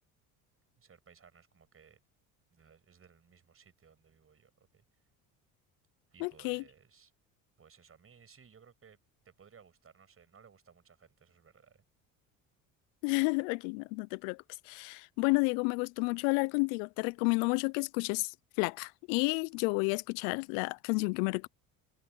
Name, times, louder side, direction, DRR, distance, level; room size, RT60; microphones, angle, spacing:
voice 1, 0.8-2.0 2.5-4.8 6.1-7.1 7.6-9.0 9.2-11.8, right 6 dB, 35° right, 6.4 m, -60 dB
voice 2, 6.2-6.6 13.0-21.5, left 31 dB, 80° left, 0.5 m, -31 dB
supercardioid pair, 80°, 39 cm